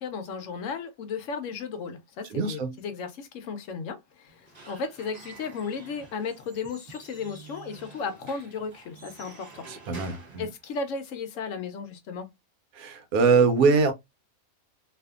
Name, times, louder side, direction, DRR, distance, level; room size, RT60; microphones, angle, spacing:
voice 1, 0.0-9.7 10.4-12.3, left 5 dB, 70° left, 0.9 m, -35 dB
voice 2, 2.3-2.8 9.7-10.5 12.7-13.9, right 4 dB, 85° right, 1.1 m, -23 dB
Squeak / Wood, 4.3-11.2, right 3 dB, 35° right, 0.8 m, -49 dB
2.7 x 2.5 x 2.3 m
omnidirectional pair, 1.5 m